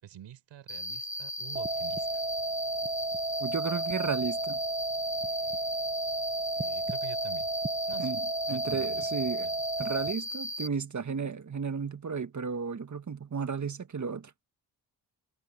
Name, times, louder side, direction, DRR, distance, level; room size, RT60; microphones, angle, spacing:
voice 1, 0.0-2.1 6.6-7.5 7.9-9.0 9.4-9.9, right 11 dB, 85° right, 7.0 m, -48 dB
Cricket, 0.7-10.7, left 1 dB, 5° left, 2.5 m, -37 dB
sound 1, 1.6-10.1, right 2 dB, 20° right, 1.4 m, -33 dB
voice 2, 3.4-4.6 8.0-8.2 8.5-9.5 9.8-14.3, right 5 dB, 40° right, 1.8 m, -33 dB
supercardioid pair, 55°, 44 cm